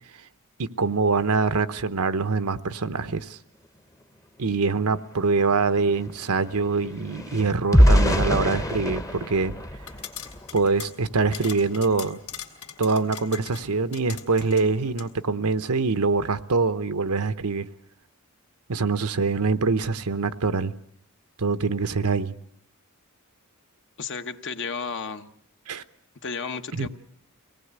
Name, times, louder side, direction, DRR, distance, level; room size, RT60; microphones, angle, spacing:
voice 1, 0.6-3.4 4.4-9.5 10.5-12.2 12.8-17.7 18.7-20.7 21.4-22.4 25.7-25.8 26.8-26.9, right 4 dB, 85° right, 11 dB, 0.9 m, -24 dB
sound 1, 4.8-4.9 5.1-10.6 11.1-11.4 11.7-11.9, equal, 15° left, 0.9 m, -24 dB
sound 2, 9.8-15.1, left 8 dB, 80° left, 2.8 m, -41 dB
voice 2, 24.0-25.3 26.2-26.9, left 5 dB, 55° left, 8 dB, 1.1 m, -33 dB
24.5 x 18.5 x 8.1 m, 0.74 s
head